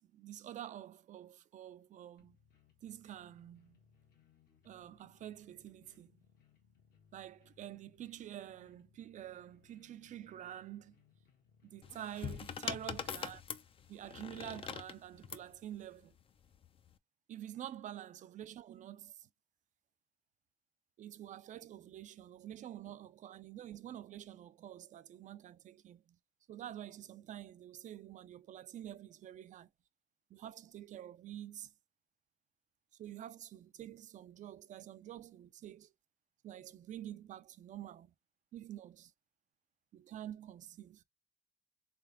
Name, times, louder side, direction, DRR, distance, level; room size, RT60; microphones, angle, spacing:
voice 1, 0.0-2.4 2.8-3.8 4.6-6.1 7.1-11.0 11.6-13.4 13.9-16.1 17.3-19.3 21.0-26.2 26.5-29.7 30.3-31.7 33.0-35.9 36.4-38.1 38.5-39.1 39.9-41.0, right 11 dB, 45° right, 0.4 m, -48 dB
sound 1, 2.2-13.3, left 6 dB, 65° left, 1.4 m, -69 dB
sound 2, 11.8-15.5 16.5-16.9, left 7 dB, 35° left, 0.4 m, -42 dB
3.5 x 3.4 x 3.4 m
cardioid pair, 110°, 17 cm